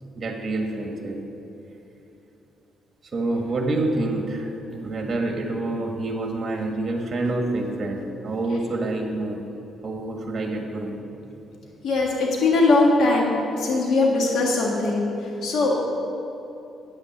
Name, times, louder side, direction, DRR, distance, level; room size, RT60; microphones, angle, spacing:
voice 1, 0.2-1.2 3.1-9.4 9.8-11.0, right 2 dB, 35° right, 2 dB, 1.7 m, -27 dB
voice 2, 11.8-15.0 15.4-15.8, left 3 dB, 70° left, -1 dB, 1.6 m, -20 dB
9.5 x 6.7 x 7.1 m, 3.0 s
cardioid pair, 90°, 0 cm